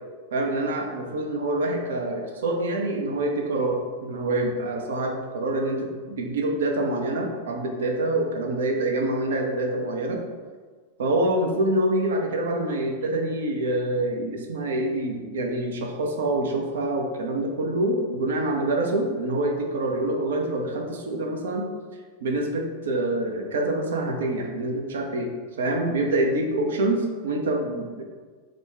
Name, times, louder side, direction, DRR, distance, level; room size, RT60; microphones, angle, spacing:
voice 1, 0.3-10.2 11.0-21.7 22.2-25.3 25.6-28.0, right 1 dB, 60° right, 2 dB, 0.5 m, -26 dB
3.7 x 2.2 x 3.3 m, 1.5 s
figure-of-eight pair, 90°, 0 cm